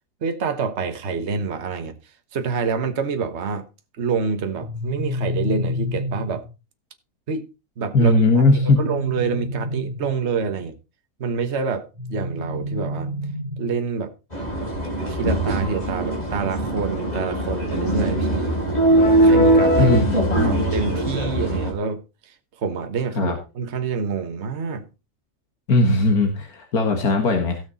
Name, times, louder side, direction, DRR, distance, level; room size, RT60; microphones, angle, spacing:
voice 1, 0.2-2.0 2.3-3.7 4.0-6.5 7.3-7.5 7.8-10.8 11.2-13.1 13.6-14.1 15.1-18.5 18.9-19.9 20.3-24.8, right 5 dB, 50° right, 1.5 m, -27 dB
sound 1, 4.6-6.5 8.2-10.2 12.0-13.9, left 1 dB, 15° right, 3.4 m, -29 dB
voice 2, 7.9-8.8 19.8-20.6 23.2-23.4 25.7-27.6, left 2 dB, 85° left, 2.3 m, -18 dB
sound 2, 14.3-21.7, right 1 dB, 25° left, 3.6 m, -21 dB
17.0 x 6.5 x 4.1 m
omnidirectional pair, 1.5 m